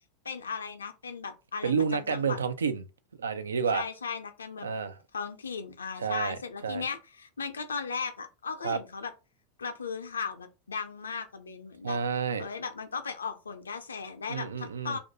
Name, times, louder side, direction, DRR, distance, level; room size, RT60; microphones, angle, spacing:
voice 1, 0.2-2.4 3.7-4.7 5.1-9.1 9.6-12.0 12.4-15.0, left 5 dB, 80° left, 0.4 m, -37 dB
voice 2, 1.6-2.8 3.2-3.9 4.6-5.0 6.0-6.8 8.6-8.8 11.8-12.5 14.3-15.0, right 6 dB, 80° right, 0.3 m, -30 dB
2.3 x 2.1 x 2.8 m
figure-of-eight pair, 90°, 0 cm